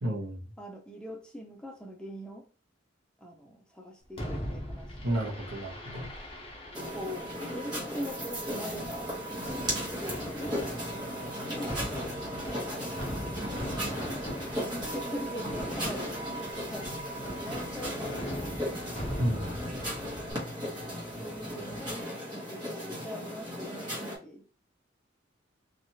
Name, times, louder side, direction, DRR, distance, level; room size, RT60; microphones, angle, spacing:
voice 1, 0.0-0.4 5.0-6.1 19.2-19.7, right 1 dB, 75° right, 0.9 m, -32 dB
voice 2, 0.6-2.4 3.2-5.2 6.8-9.1 10.0-11.9 12.5-13.1 14.7-19.4 20.8-24.5, equal, 5° left, 0.5 m, -42 dB
Fireworks, 4.2-20.3, equal, 30° left, 0.8 m, -40 dB
sound 1, 6.7-24.2, equal, 25° right, 1.0 m, -36 dB
sound 2, 10.3-22.0, left 2 dB, 85° left, 0.6 m, -50 dB
2.9 x 2.4 x 2.7 m
head